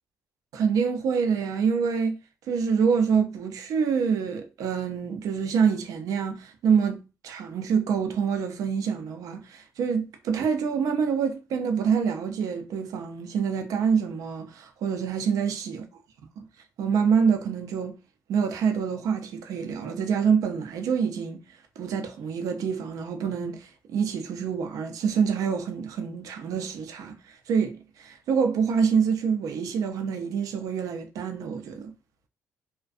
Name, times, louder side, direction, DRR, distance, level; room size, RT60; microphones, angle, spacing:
voice 1, 0.5-2.2 2.5-15.9 16.4-16.5 16.8-17.9 18.3-21.4 21.8-31.9, right 6 dB, 70° right, 0.5 m, -26 dB
2.4 x 2.2 x 2.4 m
cardioid pair, 90°, 6 cm